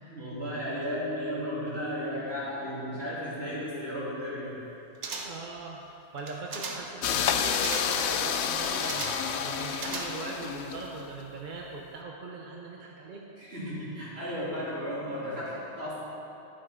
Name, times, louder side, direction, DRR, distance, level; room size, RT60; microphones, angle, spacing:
voice 1, 0.0-4.5 13.4-16.0, equal, 65° right, -9 dB, 3.2 m, -34 dB
sound 1, 5.0-5.5 6.2-7.0 7.6-8.1 8.9-9.3 9.8-10.4 10.7-10.8, right 4 dB, 80° right, 1.2 m, -38 dB
voice 2, 5.1-5.8 6.1-13.2, right 3 dB, 50° right, -1 dB, 0.9 m, -40 dB
sound 2, 7.0-11.1, left 7 dB, 75° left, 0.8 m, -29 dB
11.5 x 7.6 x 5.0 m, 2.9 s
omnidirectional pair, 1.2 m